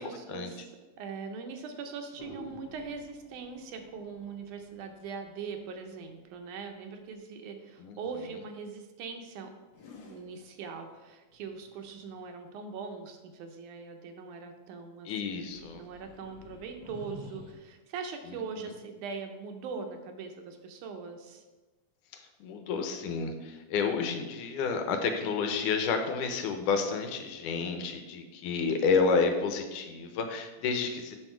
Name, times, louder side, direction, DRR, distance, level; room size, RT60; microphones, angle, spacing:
voice 1, 0.0-9.5 10.1-21.4, right 5 dB, 75° right, 5 dB, 2.2 m, -41 dB
sound 1, 2.2-6.5 9.7-12.1 15.4-17.5, left 3 dB, 60° left, 1.2 m, -50 dB
voice 2, 15.1-15.8 22.4-31.2, left 5 dB, 80° left, 6 dB, 2.3 m, -30 dB
8.1 x 6.3 x 4.5 m, 1.2 s
omnidirectional pair, 3.7 m